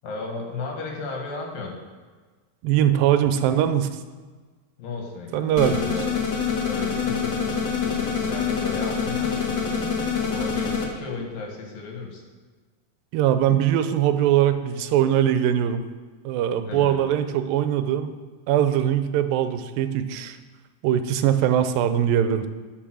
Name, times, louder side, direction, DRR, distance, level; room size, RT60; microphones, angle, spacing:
voice 1, 0.0-1.7 4.8-6.1 6.6-12.2 16.7-17.0, left 4 dB, 80° left, 1 dB, 3.5 m, -34 dB
voice 2, 2.6-3.9 5.3-5.8 13.1-15.8 16.3-18.2 18.5-20.4 20.8-22.5, right 10 dB, 85° right, 10 dB, 2.4 m, -21 dB
sound 1, 5.6-10.9, left 6 dB, 55° left, 1.2 m, -26 dB
12.5 x 5.5 x 6.2 m, 1.4 s
omnidirectional pair, 4.0 m